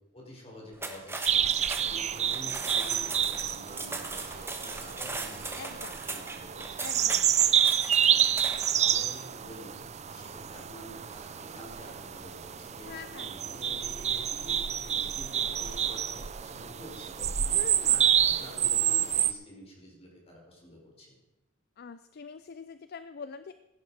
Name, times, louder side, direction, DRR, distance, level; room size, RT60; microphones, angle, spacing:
voice 1, 0.1-7.0 7.4-7.6 8.0-9.8 10.1-17.6 17.8-21.1, left 1 dB, 30° left, -1 dB, 4.6 m, -49 dB
sound 1, 0.7-8.8, right 3 dB, 10° right, 1.2 m, -39 dB
sound 2, 1.2-19.3, right 9 dB, 35° right, 0.5 m, -28 dB
voice 2, 5.6-6.0 6.8-7.3 12.9-13.3 17.5-18.0 21.8-23.5, left 5 dB, 50° left, 13 dB, 0.4 m, -44 dB
15.5 x 10.5 x 4.8 m, 0.97 s
head